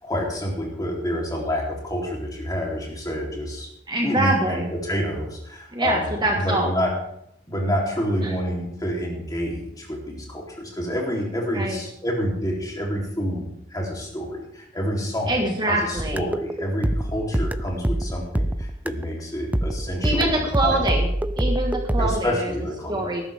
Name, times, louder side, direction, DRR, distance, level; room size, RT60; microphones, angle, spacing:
voice 1, 0.0-3.7 4.0-6.9 7.5-20.3 20.6-20.8 22.0-23.1, equal, 20° left, -2 dB, 3.5 m, -28 dB
voice 2, 3.9-4.6 5.7-6.7 8.2-8.3 11.5-11.8 15.3-16.2 20.0-21.1 21.4-22.5 22.9-23.2, right 1 dB, 25° right, 1 dB, 1.8 m, -24 dB
sound 1, 16.0-19.1 19.5-22.2, right 1 dB, 10° right, 0.4 m, -25 dB
19.5 x 11.0 x 3.6 m, 0.77 s
head